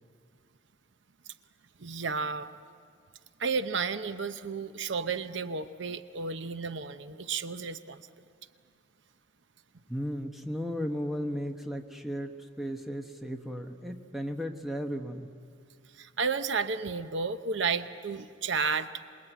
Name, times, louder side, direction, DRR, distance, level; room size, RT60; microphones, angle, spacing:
voice 1, 1.8-2.5 3.4-8.0 16.0-18.9, right 5 dB, 65° right, 11 dB, 0.8 m, -32 dB
voice 2, 9.9-15.3, equal, ahead, 4 dB, 1.1 m, -35 dB
27.0 x 21.0 x 9.2 m, 2.3 s
head